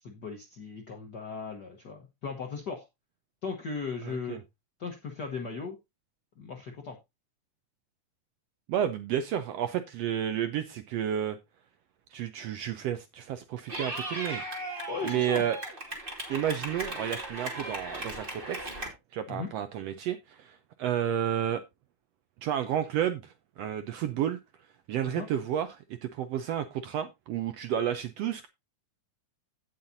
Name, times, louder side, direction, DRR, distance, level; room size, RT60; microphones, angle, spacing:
voice 1, 0.0-2.8 3.4-4.4 4.8-5.8 6.4-7.0 14.9-15.4 19.3-19.5 25.0-25.3, left 5 dB, 60° left, 1.1 m, -37 dB
voice 2, 4.0-4.4 8.7-11.4 12.1-14.4 15.0-15.6 16.3-18.7 19.1-21.6 22.4-24.4 24.9-28.5, right 10 dB, 75° right, 1.5 m, -31 dB
Clapping / Cheering, 13.7-18.9, right 2 dB, 20° right, 2.3 m, -37 dB
16.5 x 5.8 x 2.6 m
omnidirectional pair, 3.5 m